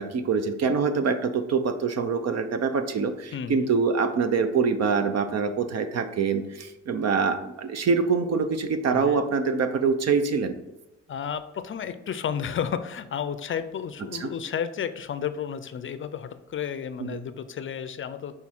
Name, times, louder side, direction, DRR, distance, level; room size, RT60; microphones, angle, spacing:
voice 1, 0.0-10.6 14.2-14.3 17.0-17.2, right 5 dB, 55° right, 9 dB, 0.8 m, -25 dB
voice 2, 3.3-3.7 8.9-9.2 11.1-18.4, left 8 dB, 40° left, 12 dB, 0.5 m, -32 dB
6.0 x 3.8 x 4.3 m, 0.98 s
cardioid pair, 90°, 30 cm